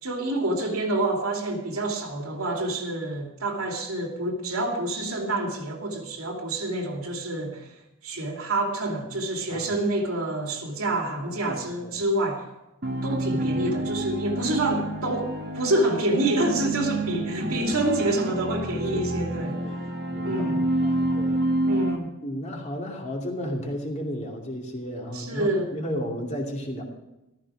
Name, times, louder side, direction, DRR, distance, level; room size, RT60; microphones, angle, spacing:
voice 1, 0.0-7.7 8.0-12.5 13.0-19.6 20.2-20.7 21.7-22.1 25.1-25.8, right 2 dB, 75° right, 2 dB, 2.6 m, -27 dB
voice 2, 11.4-11.9 18.9-21.4 22.2-26.8, equal, 30° left, 0 dB, 2.6 m, -34 dB
sound 1, 12.8-22.0, right 1 dB, 45° right, 1.6 m, -28 dB
14.5 x 14.0 x 4.9 m, 0.96 s
head